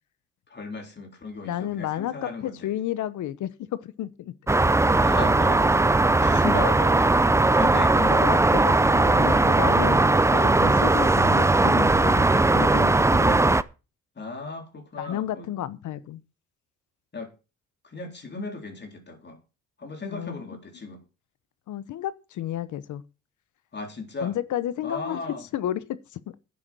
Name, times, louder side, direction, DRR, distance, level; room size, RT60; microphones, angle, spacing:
voice 1, 0.5-2.7 5.0-7.1 7.5-8.6 10.3-10.5 14.2-15.5 17.1-17.3 17.8-19.4 19.8-21.0 23.7-24.4 24.8-25.4, left 3 dB, 35° left, 3.8 m, -36 dB
voice 2, 1.4-4.3 7.9-10.0 10.3-13.5 15.0-16.2 20.1-20.6 21.7-23.0 24.2-25.2 25.5-26.4, left 12 dB, 75° left, 1.0 m, -32 dB
sound 1, 4.5-13.6, right 2 dB, 10° right, 0.5 m, -19 dB
10.0 x 8.4 x 6.2 m
cardioid pair, 90°, 30 cm